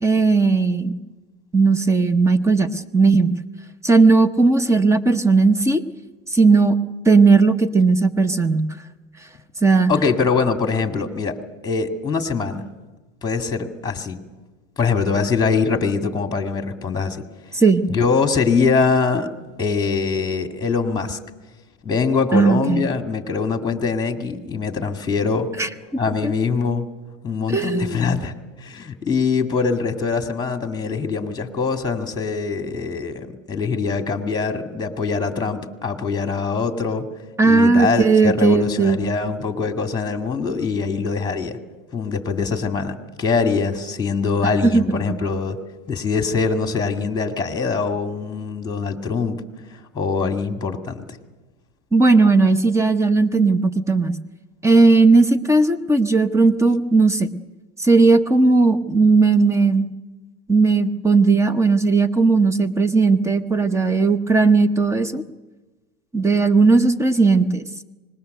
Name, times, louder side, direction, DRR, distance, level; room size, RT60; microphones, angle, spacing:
voice 1, 0.0-0.9 1.5-3.3 3.8-5.8 6.3-6.8 7.1-8.7 9.6-9.9 17.5-17.8 22.3-22.8 25.6-25.7 26.2-26.3 27.5-28.1 37.4-39.0 44.4-45.2 51.9-54.2 54.6-57.3 57.8-59.9 60.5-65.2 66.1-67.6, right 3 dB, 5° right, 13 dB, 0.8 m, -16 dB
voice 2, 9.9-11.4 11.6-12.7 13.2-14.2 14.8-17.2 17.9-19.3 19.6-21.2 21.8-25.5 26.0-26.9 27.2-28.3 28.6-37.1 37.4-41.6 41.9-45.6 45.9-49.4 49.9-51.1, left 4 dB, 10° left, 5 dB, 2.1 m, -23 dB
25.5 x 20.5 x 6.7 m, 1.2 s
supercardioid pair, 130°, 38 cm